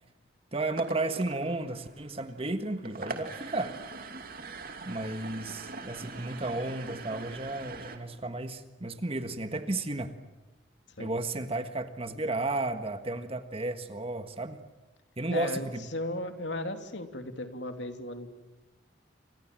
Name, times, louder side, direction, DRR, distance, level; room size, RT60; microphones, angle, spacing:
voice 1, 0.5-3.7 4.8-10.1 11.0-14.6 15.2-15.9, right 2 dB, 30° right, 8 dB, 1.6 m, -33 dB
sound 1, 0.6-8.0, right 3 dB, 50° right, 2.8 m, -43 dB
voice 2, 15.3-15.7 15.9-18.3, left 1 dB, 65° left, 6 dB, 3.0 m, -36 dB
29.5 x 26.0 x 7.5 m, 1.1 s
head